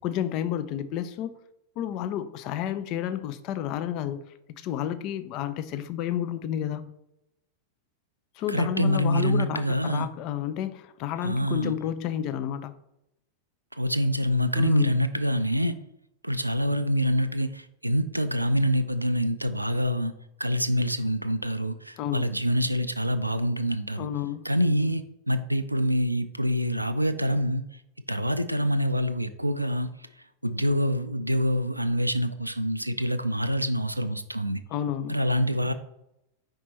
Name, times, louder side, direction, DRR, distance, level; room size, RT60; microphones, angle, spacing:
voice 1, 0.0-1.4 1.8-6.9 8.4-12.8 14.6-14.9 22.0-22.3 24.0-24.5 34.7-35.2, left 10 dB, 40° left, 12 dB, 0.4 m, -31 dB
voice 2, 8.5-10.1 11.2-11.7 13.7-15.8 16.2-20.1 20.4-24.1 24.4-27.6 28.1-29.9 30.4-34.6 35.1-35.7, equal, 85° right, 11 dB, 0.3 m, -26 dB
5.0 x 4.4 x 4.2 m, 0.85 s
figure-of-eight pair, 90°, 0 cm